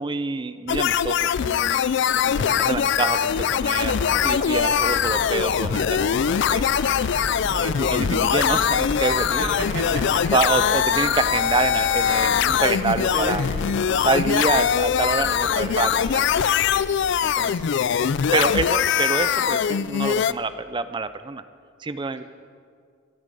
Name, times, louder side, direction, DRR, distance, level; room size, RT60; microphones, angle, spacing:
voice 1, 0.0-1.8 2.6-6.7 7.5-9.5 10.3-13.4 14.0-16.5 17.2-17.6 18.0-21.4 21.8-22.2, right 4 dB, 25° right, 12 dB, 0.4 m, -27 dB
sound 1, 0.7-20.3, left 8 dB, 60° left, 0.3 m, -22 dB
sound 2, 2.0-14.4, right 1 dB, 40° right, 1.7 m, -41 dB
voice 2, 2.2-2.5 4.8-5.0 7.4-7.6 9.4-10.2 12.9-13.3 15.4-16.0 16.7-16.9, right 1 dB, 60° right, -2 dB, 2.6 m, -34 dB
sound 3, 3.7-20.7, equal, 85° left, 3.3 m, -38 dB
14.5 x 14.0 x 5.3 m, 2.2 s
head